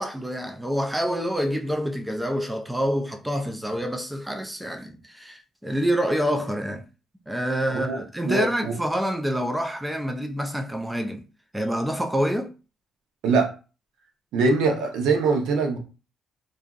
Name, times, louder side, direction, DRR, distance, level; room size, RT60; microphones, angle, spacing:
voice 1, 0.0-6.8 7.3-11.3 11.5-12.5, equal, 5° right, 0.3 m, -27 dB
voice 2, 7.7-8.7 13.2-13.5 14.3-15.8, right 4 dB, 90° right, 0.7 m, -23 dB
2.7 x 2.5 x 2.5 m
cardioid pair, 135°, 0 cm